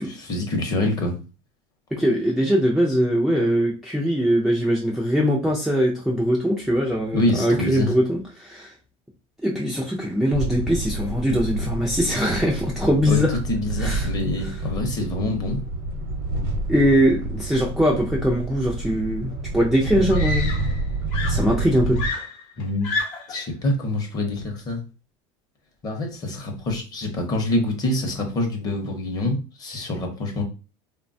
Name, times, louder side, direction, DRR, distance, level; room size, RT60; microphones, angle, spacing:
voice 1, 0.1-1.1 7.1-7.9 13.1-13.2 13.5-15.6 22.6-22.9 23.3-24.8 25.8-30.4, left 1 dB, 30° left, 3 dB, 0.7 m, -26 dB
voice 2, 1.9-8.7 9.4-13.4 13.8-14.1 14.4-14.5 16.7-20.5 21.3-22.0, equal, ahead, -3 dB, 0.3 m, -21 dB
sound 1, 10.3-22.1, right 2 dB, 70° right, 0.7 m, -28 dB
Screaming, 19.3-19.4 20.1-20.9 21.1-23.4 24.4-24.7, left 3 dB, 65° left, 0.8 m, -30 dB
3.1 x 2.2 x 2.5 m, 0.32 s
cardioid pair, 150°, 14 cm